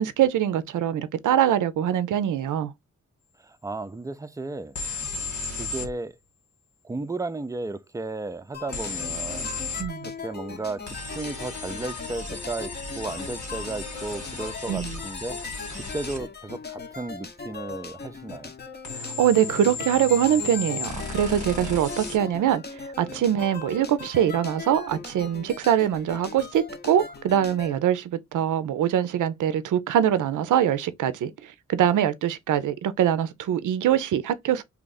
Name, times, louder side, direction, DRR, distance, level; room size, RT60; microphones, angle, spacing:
voice 1, 0.0-2.7 9.8-10.1 14.7-15.0 18.9-22.6 23.0-31.3 31.7-34.6, right 10 dB, 80° right, 0.5 m, -23 dB
voice 2, 3.4-4.8 5.6-6.1 6.8-9.5 10.0-15.6 15.9-18.5 23.1-23.2, right 2 dB, 10° right, 0.4 m, -34 dB
sound 1, 4.8-5.9 8.7-9.9 10.9-16.2 18.8-22.2, left 4 dB, 70° left, 1.8 m, -34 dB
sound 2, 8.5-27.7, left 5 dB, 35° left, 0.7 m, -40 dB
2.9 x 2.4 x 3.9 m
cardioid pair, 55°, 30 cm